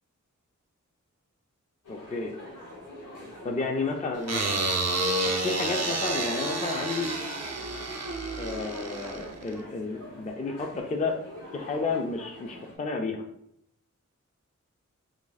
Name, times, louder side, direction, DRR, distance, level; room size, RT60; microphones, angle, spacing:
sound 1, 1.8-12.8, left 1 dB, 80° left, 1.1 m, -45 dB
voice 1, 1.9-2.3 3.4-4.7 5.2-7.1 8.4-11.2 11.5-13.2, left 3 dB, 25° left, 2 dB, 0.3 m, -31 dB
sound 2, 4.3-9.6, right 2 dB, 60° right, 0.6 m, -30 dB
2.7 x 2.6 x 3.9 m, 0.74 s
wide cardioid pair, 75°, 31 cm